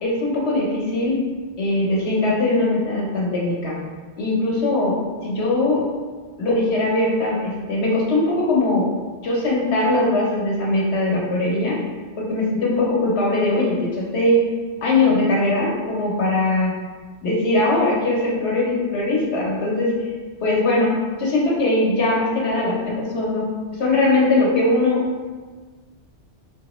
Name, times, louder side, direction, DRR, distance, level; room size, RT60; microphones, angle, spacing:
voice 1, 0.0-1.2 1.6-3.8 4.2-5.8 6.4-8.9 9.2-11.8 12.2-14.4 14.8-16.7 17.2-20.1 20.4-25.0, left 2 dB, 70° left, -4 dB, 1.0 m, -20 dB
3.8 x 2.6 x 2.9 m, 1.4 s
omnidirectional pair, 1.2 m